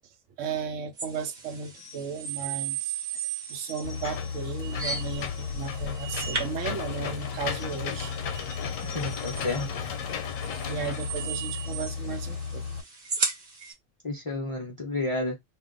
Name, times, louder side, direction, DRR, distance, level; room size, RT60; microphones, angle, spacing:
voice 1, 0.4-3.0 3.5-8.2 10.7-12.6, right 5 dB, 75° right, 1.0 m, -35 dB
sound 1, 1.0-13.7, right 5 dB, 40° right, 1.0 m, -37 dB
Engine / Mechanisms, 3.8-12.8, left 6 dB, 90° left, 1.0 m, -34 dB
voice 2, 8.8-9.7 14.0-15.4, left 2 dB, 40° left, 0.5 m, -31 dB
2.5 x 2.3 x 3.7 m
omnidirectional pair, 1.3 m